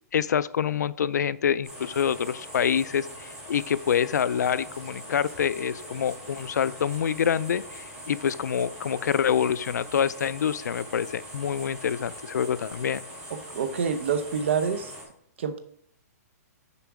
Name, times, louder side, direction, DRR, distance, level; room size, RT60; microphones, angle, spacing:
voice 1, 0.1-13.0, left 8 dB, 90° left, 17 dB, 0.4 m, -26 dB
sound 1, 1.6-15.0, equal, 10° right, 2.3 m, -42 dB
voice 2, 13.3-14.9 15.4-15.6, right 6 dB, 45° right, 10 dB, 0.8 m, -27 dB
6.9 x 5.1 x 4.7 m, 0.66 s
hypercardioid pair, 175°, 9 cm